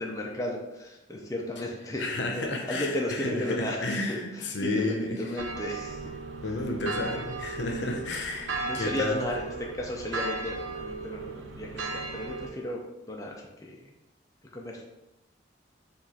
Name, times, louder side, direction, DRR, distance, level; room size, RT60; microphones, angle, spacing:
voice 1, 0.0-6.1 8.6-12.8 13.1-13.9 14.5-14.8, left 1 dB, 20° left, -1 dB, 0.5 m, -34 dB
voice 2, 2.0-5.2 6.4-9.2, left 2 dB, 70° left, 2 dB, 0.7 m, -31 dB
sound 1, 5.4-12.5, right 3 dB, 85° right, 0.6 m, -36 dB
4.8 x 2.5 x 4.1 m, 0.97 s
head